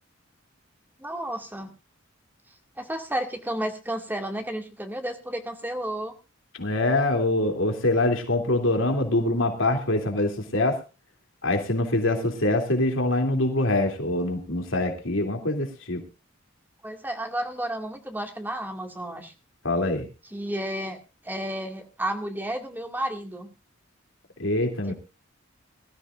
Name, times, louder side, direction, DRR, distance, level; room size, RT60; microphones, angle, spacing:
voice 1, 1.0-1.7 2.8-6.1 16.8-19.3 20.3-21.0 21.2-23.5, right 1 dB, 10° right, 5 dB, 2.2 m, -32 dB
voice 2, 6.6-10.8 11.4-16.0 19.6-20.1 24.4-24.9, left 2 dB, 80° left, 4 dB, 2.9 m, -24 dB
22.0 x 13.5 x 2.5 m, 0.31 s
head